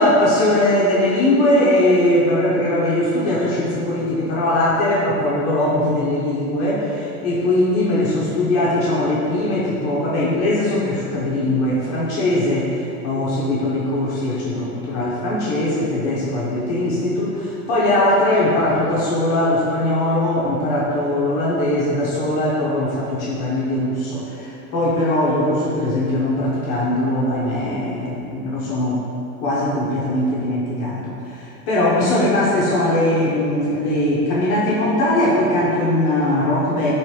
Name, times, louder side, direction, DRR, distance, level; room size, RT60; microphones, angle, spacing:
voice 1, 0.0-29.1 29.4-36.9, left 1 dB, 30° left, -7 dB, 0.7 m, -20 dB
3.1 x 3.0 x 4.6 m, 2.7 s
supercardioid pair, 155°, 46 cm